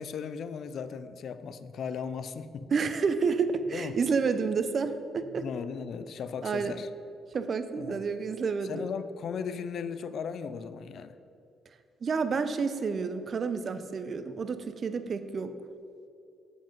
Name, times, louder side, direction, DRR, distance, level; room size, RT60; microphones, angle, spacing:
voice 1, 0.0-2.7 3.7-4.0 5.4-6.9 7.8-8.0 8.7-11.1, left 6 dB, 65° left, 13 dB, 0.5 m, -37 dB
voice 2, 2.7-5.5 6.4-6.7 7.3-8.8 12.0-15.5, right 5 dB, 45° right, 11 dB, 0.6 m, -29 dB
8.0 x 7.8 x 5.3 m, 2.6 s
cardioid pair, 80°, 0 cm